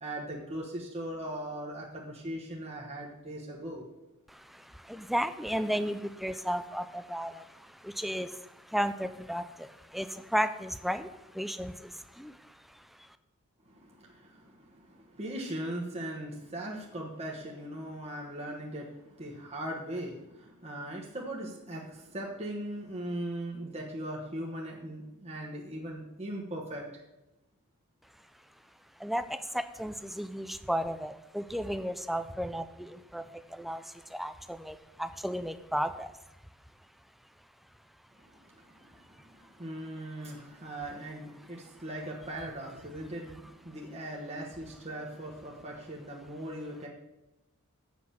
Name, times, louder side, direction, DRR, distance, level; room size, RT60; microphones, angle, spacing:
voice 1, 0.0-3.8 13.6-27.0 38.1-46.9, right 1 dB, 30° right, -3 dB, 1.2 m, -39 dB
voice 2, 4.3-13.2 29.0-36.1, equal, ahead, 11 dB, 0.4 m, -34 dB
7.6 x 5.9 x 7.1 m, 0.97 s
head